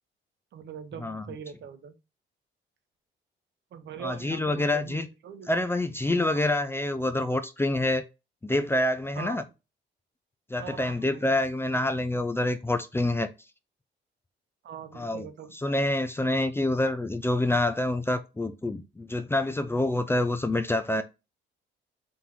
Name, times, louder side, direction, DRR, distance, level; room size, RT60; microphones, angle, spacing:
voice 1, 0.5-2.0 3.7-5.5 6.3-6.5 9.1-9.4 10.6-11.3 14.6-15.5, right 7 dB, 65° right, 0.8 m, -42 dB
voice 2, 4.0-5.1 5.5-8.0 8.4-9.4 10.5-13.3 14.9-15.3 15.5-21.0, left 1 dB, 10° left, 0.4 m, -27 dB
3.8 x 2.9 x 3.6 m
cardioid pair, 90°, 20 cm